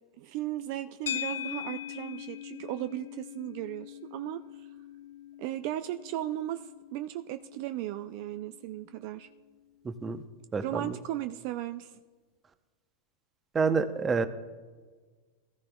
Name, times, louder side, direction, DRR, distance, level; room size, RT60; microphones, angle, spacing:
voice 1, 0.2-4.6 5.4-9.3 10.6-12.0, right 14 dB, 55° right, 10 dB, 0.4 m, -36 dB
sound 1, 1.1-9.5, left 11 dB, 75° left, 0.4 m, -42 dB
voice 2, 9.8-10.2 10.5-11.0 13.5-14.3, right 5 dB, 20° right, 11 dB, 0.8 m, -28 dB
17.0 x 13.0 x 2.3 m, 1.4 s
hypercardioid pair, 100°, 0 cm